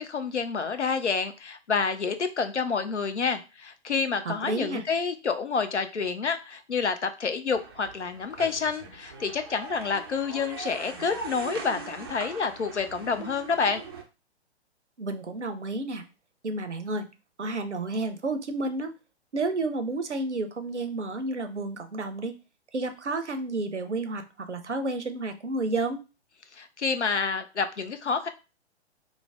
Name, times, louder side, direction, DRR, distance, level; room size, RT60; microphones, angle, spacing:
voice 1, 0.0-13.8 26.6-28.3, left 5 dB, 85° left, 9 dB, 0.6 m, -28 dB
voice 2, 4.2-4.8 15.0-16.0 16.4-17.1 17.4-18.9 19.3-22.3 22.7-26.0, right 2 dB, 90° right, 8 dB, 0.6 m, -31 dB
sound 1, 7.5-14.0, right 4 dB, 25° right, 0.3 m, -41 dB
3.2 x 2.0 x 3.5 m, 0.30 s
figure-of-eight pair, 120°, 34 cm